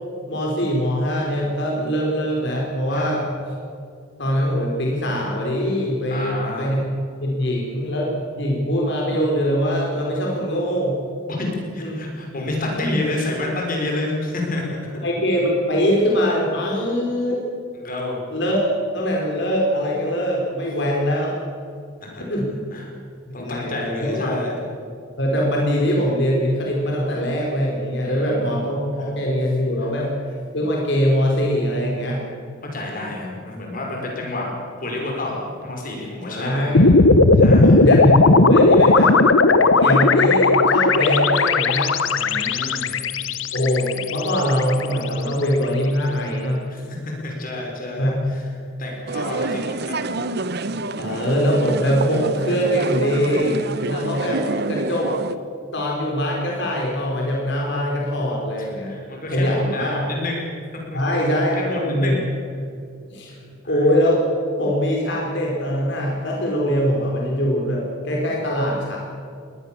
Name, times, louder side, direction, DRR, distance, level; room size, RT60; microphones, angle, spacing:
voice 1, 0.3-3.2 4.2-11.0 11.8-11.9 12.2-12.4 12.7-13.0 15.0-17.5 18.3-21.3 22.3-22.5 23.3-24.4 25.2-30.1 30.5-32.2 36.3-36.9 37.6-39.2 39.8-41.9 43.5-46.6 48.0-48.3 51.0-55.1 55.7-58.9 59.3-60.0 60.9-62.2 63.1-63.3 63.7-64.2 64.6-69.0, equal, 60° left, -2 dB, 4.3 m, -22 dB
voice 2, 6.1-6.7 11.3-11.5 11.7-14.6 17.7-18.2 22.0-22.2 22.7-22.9 23.3-24.6 28.0-28.6 29.8-29.9 32.7-34.5 34.8-36.7 37.3-37.8 42.1-42.9 46.7-47.0 47.2-48.4 48.8-50.0 58.6-60.4 60.7-61.0 61.5-62.2 63.6-63.9, left 2 dB, 45° left, 0 dB, 5.6 m, -29 dB
sound 1, 36.7-45.0, left 3 dB, 75° left, 1.2 m, -16 dB
sound 2, 49.1-55.4, right 2 dB, 55° right, 0.9 m, -27 dB
22.0 x 19.0 x 7.2 m, 2.4 s
head